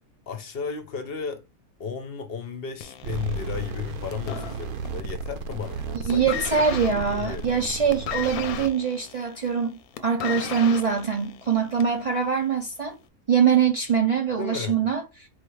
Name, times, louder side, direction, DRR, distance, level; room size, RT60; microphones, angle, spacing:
voice 1, 0.3-1.4 1.8-7.5 14.4-14.8, left 6 dB, 55° left, 0.8 m, -34 dB
sound 1, 2.8-5.1 5.4-5.8 6.1-12.1 12.9-13.0, left 9 dB, 90° left, 1.1 m, -36 dB
sound 2, 3.0-8.7, right 4 dB, 90° right, 1.1 m, -34 dB
voice 2, 6.1-13.0 13.3-15.0, right 7 dB, 65° right, 0.3 m, -23 dB
4.3 x 3.2 x 3.1 m
omnidirectional pair, 1.5 m